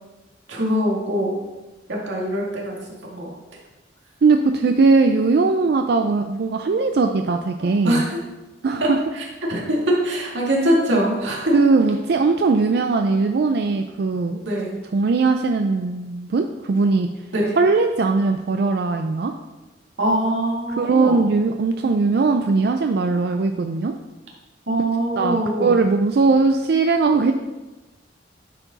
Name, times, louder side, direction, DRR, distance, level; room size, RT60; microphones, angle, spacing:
voice 1, 0.5-1.4 1.9-2.8 3.1-3.3 7.6-8.2 8.8-8.9 9.1-11.5 14.4-14.8 17.3-17.6 20.0-21.2 24.7-25.8, right 1 dB, 85° right, -3 dB, 2.0 m, -23 dB
voice 2, 4.2-8.1 8.6-9.0 11.5-14.4 14.9-17.1 17.6-19.3 20.7-23.9 25.2-27.3, right 4 dB, 60° right, 5 dB, 0.4 m, -19 dB
9.7 x 4.7 x 3.9 m, 1.1 s
head